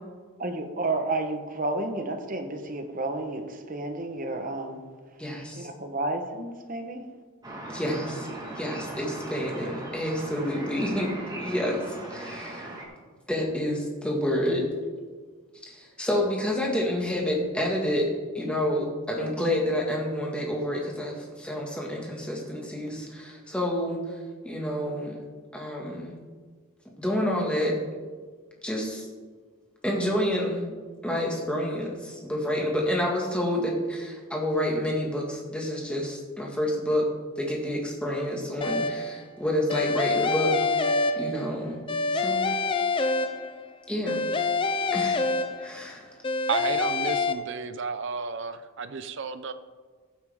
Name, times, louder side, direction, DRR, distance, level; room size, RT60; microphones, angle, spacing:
voice 1, 0.4-4.8 5.5-7.1, right 2 dB, 35° right, 1.0 m, -31 dB
voice 2, 5.2-5.7 7.7-12.7 13.3-14.7 15.6-25.2 25.5-26.2 26.8-27.8 28.6-29.1 29.8-30.7 31.0-37.1 37.4-41.8 42.1-42.5 43.9-44.3 44.9-45.2 45.6-46.2, left 1 dB, 5° left, 1.7 m, -29 dB
sound 1, 7.4-12.8, right 1 dB, 20° right, 1.6 m, -38 dB
sound 2, 38.6-39.2 39.7-41.6 41.9-43.7 44.1-45.9 46.2-47.3, left 3 dB, 20° left, 0.4 m, -26 dB
voice 3, 46.5-49.5, right 5 dB, 55° right, 0.6 m, -32 dB
15.0 x 8.3 x 3.6 m
head